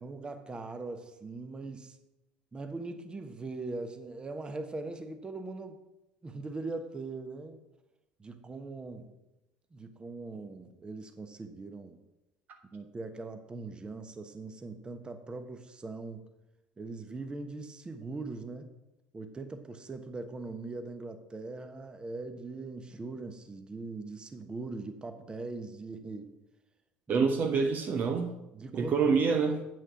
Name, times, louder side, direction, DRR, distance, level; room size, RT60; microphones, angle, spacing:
voice 1, 0.0-2.0 2.5-5.8 6.2-7.6 8.2-9.1 9.7-12.0 12.7-16.3 16.8-18.7 19.1-26.4 27.1-27.3 28.5-29.0, right 3 dB, 20° right, 8 dB, 1.2 m, -41 dB
voice 2, 27.1-28.4 28.7-29.6, right 5 dB, 40° right, 4 dB, 0.9 m, -26 dB
8.4 x 6.3 x 5.9 m, 0.94 s
figure-of-eight pair, 65°, 4 cm